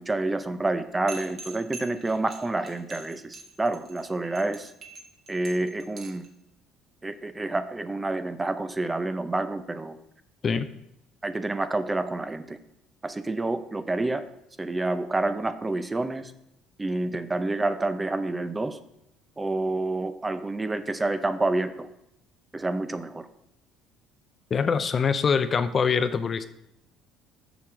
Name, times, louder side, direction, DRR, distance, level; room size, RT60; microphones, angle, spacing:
voice 1, 0.0-4.7 5.3-6.2 7.0-10.0 11.2-12.6 13.0-14.3 14.6-16.3 16.8-18.8 19.4-21.9 22.5-23.3, right 2 dB, 20° right, 11 dB, 0.6 m, -28 dB
sound 1, 1.1-6.3, right 3 dB, 55° right, 1.6 m, -43 dB
voice 2, 24.5-26.5, left 6 dB, 40° left, 11 dB, 0.5 m, -24 dB
7.0 x 5.8 x 4.9 m, 0.82 s
supercardioid pair, 75°, 0 cm